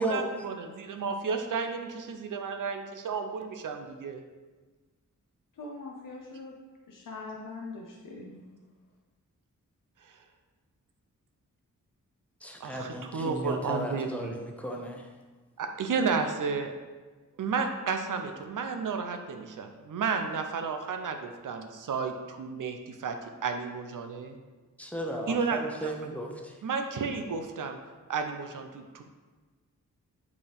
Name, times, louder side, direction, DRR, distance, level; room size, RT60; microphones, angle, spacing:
voice 1, 0.0-4.2 10.1-10.2 12.6-14.3 15.6-16.7 17.4-23.2 23.4-24.4 25.3-25.9 26.6-27.8 28.1-29.0, right 5 dB, 80° right, 6 dB, 0.7 m, -32 dB
voice 2, 5.6-6.6 6.9-8.4, left 3 dB, 80° left, -2 dB, 0.9 m, -42 dB
voice 3, 12.4-15.0 24.8-26.5, right 1 dB, 5° left, 0 dB, 1.0 m, -35 dB
8.1 x 4.7 x 3.5 m, 1.3 s
wide cardioid pair, 95°, 32 cm